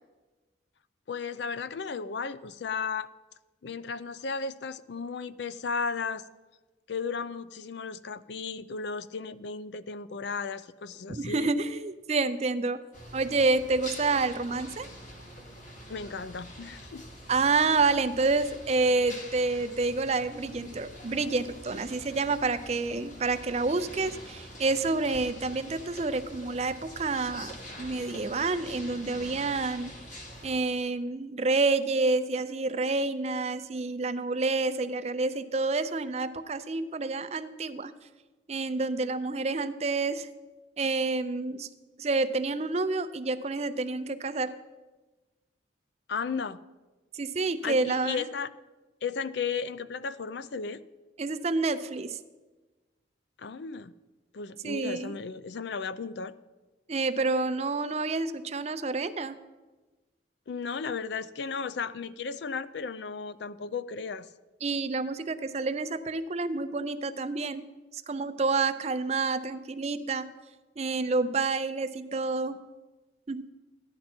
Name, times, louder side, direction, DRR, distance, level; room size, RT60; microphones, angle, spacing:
voice 1, 1.1-3.1 3.6-6.2 6.9-11.5 15.9-17.0 46.1-46.6 47.6-48.5 49.0-50.8 53.4-53.9 54.3-56.3 60.5-64.3, left 5 dB, 65° left, 14 dB, 0.4 m, -35 dB
voice 2, 11.1-12.8 13.1-14.9 17.3-27.5 27.8-29.9 30.4-37.9 38.5-40.3 40.8-41.7 42.0-44.6 47.1-48.3 51.2-52.2 54.6-55.2 56.9-59.4 64.6-67.7 67.9-70.3 70.8-72.6 73.3-73.5, right 3 dB, 35° right, 11 dB, 0.5 m, -28 dB
sound 1, 12.9-30.6, equal, 40° left, 2.0 m, -45 dB
14.5 x 10.5 x 4.3 m, 1.2 s
head